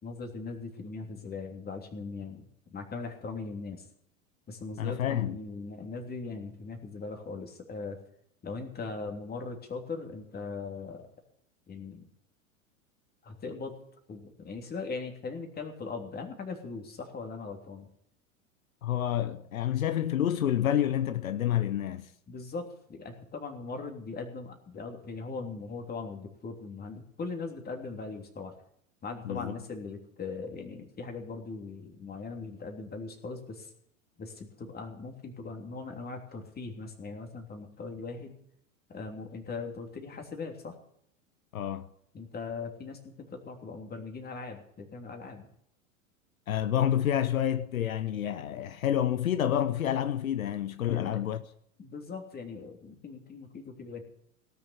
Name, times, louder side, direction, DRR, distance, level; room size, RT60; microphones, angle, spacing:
voice 1, 0.0-2.4 2.7-3.9 4.5-8.0 8.4-11.0 11.7-12.1 13.2-13.7 14.1-17.9 22.3-28.5 29.0-33.7 34.2-38.3 38.9-40.8 42.1-45.5 50.9-51.2 51.8-54.0, left 4 dB, 20° left, 3.1 m, -40 dB
voice 2, 4.8-5.4 18.8-22.1 29.2-29.5 41.5-41.9 46.5-51.4, left 10 dB, 80° left, 0.8 m, -28 dB
17.5 x 6.9 x 9.6 m
hypercardioid pair, 95°, 41 cm